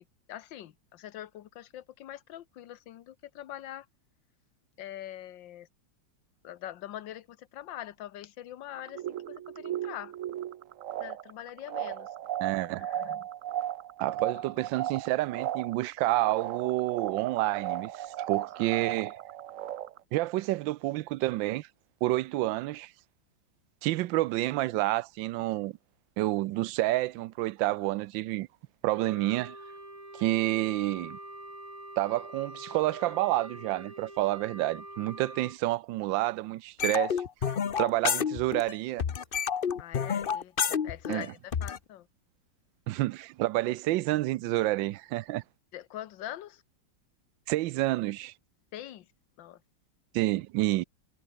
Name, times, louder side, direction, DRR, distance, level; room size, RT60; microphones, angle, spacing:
voice 1, 0.0-3.9 4.8-5.7 6.4-10.1 11.0-12.1 12.6-13.2 14.3-14.4 39.8-42.1 45.7-46.6 48.7-49.1 49.4-49.6, left 12 dB, 80° left, 1.7 m, -43 dB
sound 1, 8.7-20.0, right 11 dB, 60° right, 0.8 m, -36 dB
voice 2, 12.4-12.9 14.0-19.1 20.1-21.7 22.0-22.9 23.8-25.8 26.2-28.5 28.8-29.6 30.1-31.2 32.0-39.0 41.1-41.3 42.9-45.4 47.5-48.3 50.1-50.8, right 17 dB, 85° right, 1.3 m, -29 dB
Wind instrument woodwind instrument, 28.9-35.6, right 1 dB, 20° right, 5.3 m, -45 dB
sound 2, 36.8-38.7 39.0-41.8, left 7 dB, 45° left, 0.7 m, -29 dB
omnidirectional pair, 2.0 m